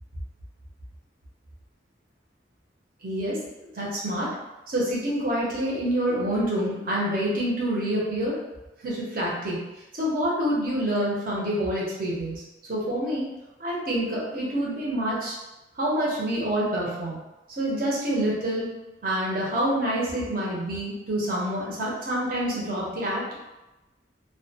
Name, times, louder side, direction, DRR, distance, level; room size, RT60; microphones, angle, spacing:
voice 1, 3.0-3.4 3.8-4.3 4.7-8.4 8.8-9.6 9.9-12.4 12.7-13.3 13.6-15.4 15.8-17.2 17.6-18.7 19.0-23.2, right 1 dB, 50° right, -5 dB, 0.7 m, -27 dB
2.4 x 2.2 x 2.7 m, 1.0 s
head